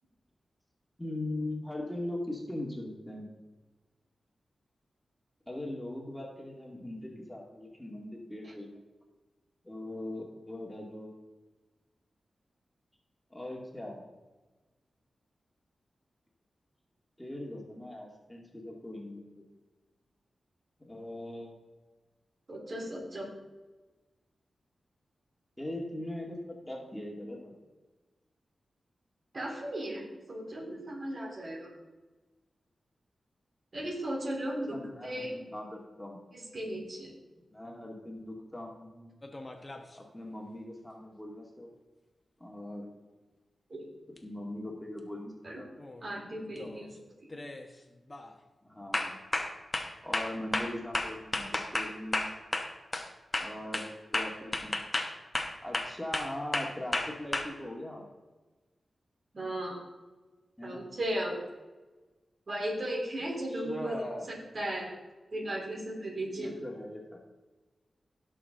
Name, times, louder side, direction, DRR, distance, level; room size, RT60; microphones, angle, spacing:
voice 1, 1.0-3.3 5.5-8.8 9.6-11.1 13.3-14.0 17.2-19.4 20.8-21.5 25.6-27.5 34.7-36.2 37.5-39.1 39.9-41.7 42.4-42.9 44.2-45.7 48.6-49.2 50.0-52.3 53.4-53.9 54.1-54.8 55.6-58.1 60.6-60.9 63.5-64.3 66.4-67.2, left 1 dB, 10° left, -1 dB, 2.2 m, -40 dB
voice 2, 22.5-23.3 29.3-31.7 33.7-35.3 36.3-37.1 43.7-43.8 45.4-45.6 46.0-46.9 59.3-59.9 60.6-61.4 62.5-64.9 65.3-66.5, right 1 dB, 50° right, -2 dB, 3.6 m, -36 dB
sound 1, 39.2-39.9 44.2-44.3 45.8-46.1 46.5-46.8 47.3-47.7 48.1-48.3 48.9-53.1 53.3-57.4, left 2 dB, 30° left, 1.3 m, -33 dB
16.5 x 6.3 x 3.8 m, 1.2 s
cardioid pair, 70°, 0 cm